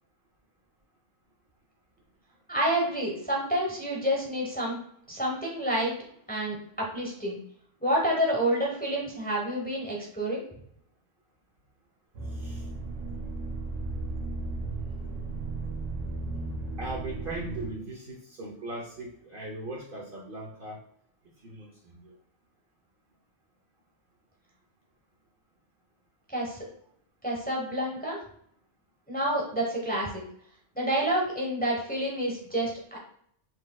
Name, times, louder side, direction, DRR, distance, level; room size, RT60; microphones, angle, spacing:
voice 1, 2.5-4.8 5.1-7.4 7.8-10.4 26.3-26.6 27.2-28.2 29.1-30.2 30.7-33.0, right 1 dB, 10° left, -2 dB, 0.9 m, -29 dB
sound 1, 12.1-17.7, right 3 dB, 85° right, 1.5 m, -35 dB
voice 2, 12.3-12.7 13.9-14.0 16.8-20.8 21.4-22.1, right 2 dB, 50° right, -1 dB, 0.9 m, -39 dB
5.7 x 3.2 x 2.3 m, 0.66 s
omnidirectional pair, 1.3 m